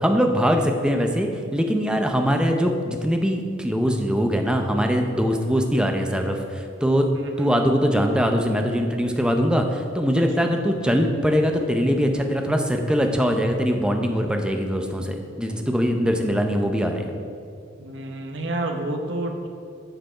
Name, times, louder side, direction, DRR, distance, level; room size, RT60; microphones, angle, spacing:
voice 1, 0.0-7.1 7.4-17.1, equal, 5° right, 4 dB, 0.6 m, -22 dB
voice 2, 7.1-7.7 10.1-10.5 17.8-19.5, right 1 dB, 65° right, 3 dB, 1.0 m, -30 dB
7.8 x 6.7 x 5.6 m, 2.4 s
head